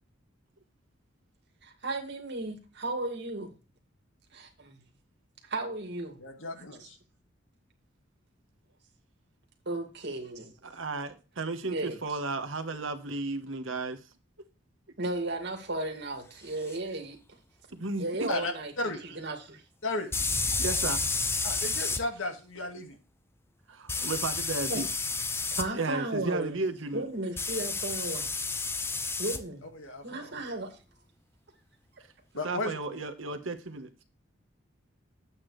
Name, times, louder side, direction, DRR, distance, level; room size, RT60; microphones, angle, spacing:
voice 1, 1.6-3.5 4.3-4.8 5.4-6.2 6.6-6.7 9.7-10.5 11.7-12.0 15.0-17.2 18.0-19.6 24.7-24.8 25.5-26.6 26.9-28.3 29.2-29.6 30.0-30.7, right 2 dB, 60° right, 2.3 m, -35 dB
voice 2, 6.2-7.0 18.3-19.0 19.8-20.1 21.4-23.0 29.7-30.4 32.3-32.7, left 2 dB, 80° left, 1.9 m, -34 dB
voice 3, 10.6-14.0 17.7-18.3 20.6-21.0 23.7-24.9 25.7-27.0 32.4-33.9, right 3 dB, 80° right, 1.3 m, -34 dB
sound 1, 16.7-16.8 20.1-22.0 23.9-25.7 27.4-29.4, left 4 dB, 10° left, 0.5 m, -30 dB
11.0 x 8.5 x 3.3 m
head